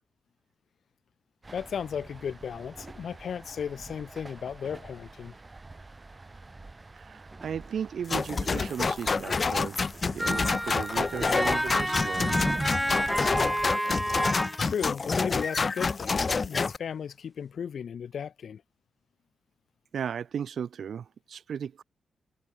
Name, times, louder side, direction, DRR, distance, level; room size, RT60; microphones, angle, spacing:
sound 1, 1.4-13.8, right 3 dB, 30° right, 1.0 m, -43 dB
voice 1, 1.5-5.4 14.6-18.6, left 7 dB, 70° left, 0.7 m, -35 dB
voice 2, 6.9-12.4 19.9-21.8, right 7 dB, 70° right, 0.8 m, -36 dB
sound 2, 8.1-16.8, left 4 dB, 45° left, 0.9 m, -28 dB
sound 3, 10.2-14.7, equal, 5° right, 0.5 m, -30 dB
cardioid pair, 55°, 0 cm